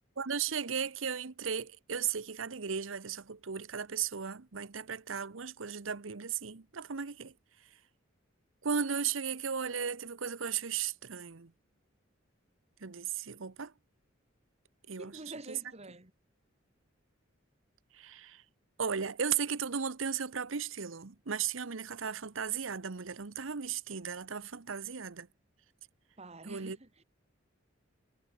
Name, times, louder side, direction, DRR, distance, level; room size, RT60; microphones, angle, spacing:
voice 1, 0.2-7.3 8.6-11.5 12.8-13.7 14.9-15.1 15.5-15.6 17.9-18.4 18.8-25.3 26.4-26.8, right 7 dB, 90° right, 1.0 m, -36 dB
voice 2, 15.0-16.1 26.2-27.0, right 2 dB, 35° right, 3.0 m, -47 dB
head